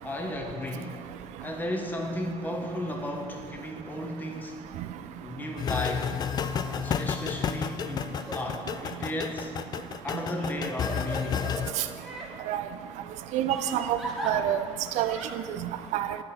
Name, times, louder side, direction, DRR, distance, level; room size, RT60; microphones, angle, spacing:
voice 1, 0.0-1.0 1.4-4.7 5.2-6.1 6.6-9.5 10.0-11.4, left 1 dB, 15° left, 2 dB, 0.8 m, -34 dB
sound 1, 5.6-11.7, left 7 dB, 35° left, 0.3 m, -31 dB
Crying sobbing, 8.1-8.4 9.0-9.1 10.1-12.3 13.5-14.3 15.0-15.3, right 2 dB, ahead, 1.4 m, -38 dB
voice 2, 13.3-14.0 14.2-14.6 15.0-16.2, right 11 dB, 85° right, 11 dB, 0.5 m, -28 dB
11.0 x 4.4 x 5.8 m, 2.2 s
cardioid pair, 135°, 12 cm